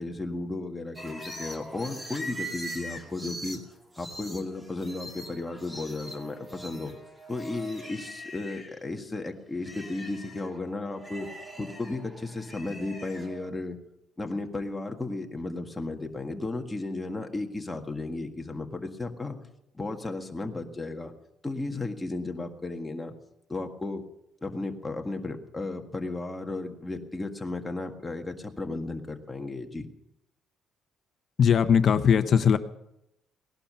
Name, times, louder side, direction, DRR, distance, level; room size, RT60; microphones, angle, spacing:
voice 1, 0.0-3.6 4.0-7.0 7.3-11.3 11.6-13.8 14.2-19.4 19.7-21.1 21.4-23.1 23.5-24.0 24.4-29.9, left 2 dB, 15° left, 3 dB, 1.8 m, -34 dB
sound 1, 1.0-8.8 9.2-13.5, equal, 10° right, 2.4 m, -42 dB
voice 2, 31.4-32.6, left 7 dB, 50° left, 10 dB, 0.8 m, -20 dB
18.5 x 11.5 x 5.6 m, 0.83 s
cardioid pair, 115°, 0 cm